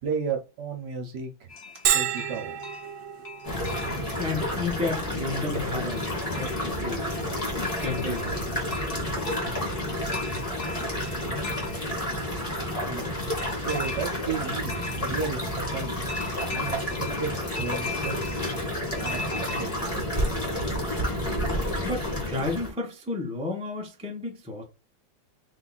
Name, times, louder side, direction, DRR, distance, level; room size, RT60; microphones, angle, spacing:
voice 1, 0.0-1.5 1.9-2.6 12.8-13.1 13.6-16.0 16.5-16.9 17.2-17.3 17.6-18.4 19.0-19.7 19.9-20.1, right 5 dB, 60° right, 1.4 m, -33 dB
sound 1, 1.5-19.6, left 4 dB, 55° left, 0.8 m, -41 dB
Bell, 1.9-17.3, right 10 dB, 75° right, 1.3 m, -37 dB
sound 2, 3.4-22.7, left 1 dB, 20° left, 1.4 m, -30 dB
voice 2, 4.2-6.0 6.4-7.0 7.6-8.4 21.8-24.6, left 3 dB, 5° right, 0.6 m, -32 dB
3.9 x 2.8 x 3.9 m
omnidirectional pair, 2.3 m